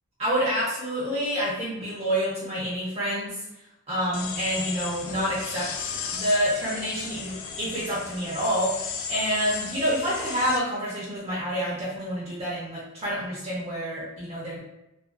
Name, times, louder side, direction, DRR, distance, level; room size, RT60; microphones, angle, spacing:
voice 1, 0.2-3.4 3.9-14.6, equal, 30° right, -8 dB, 0.6 m, -28 dB
sound 1, 4.1-10.6, left 6 dB, 70° left, 0.3 m, -35 dB
2.4 x 2.3 x 2.2 m, 0.90 s
head